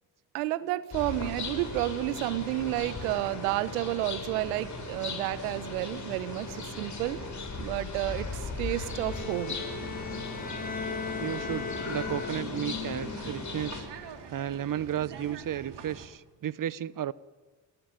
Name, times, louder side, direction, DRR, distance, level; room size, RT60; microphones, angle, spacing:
voice 1, 0.3-7.2 7.6-9.6, right 15 dB, 80° right, 16 dB, 1.2 m, -31 dB
sound 1, 0.9-13.8, left 4 dB, 40° left, 7.6 m, -37 dB
sound 2, 1.1-16.1, right 5 dB, 60° right, 3.8 m, -46 dB
Bowed string instrument, 8.6-12.8, left 4 dB, 20° left, 0.8 m, -39 dB
voice 2, 11.2-13.9 14.3-17.1, right 10 dB, 45° right, 19 dB, 1.0 m, -33 dB
28.5 x 20.0 x 9.3 m, 1.4 s
hypercardioid pair, 50°, 45 cm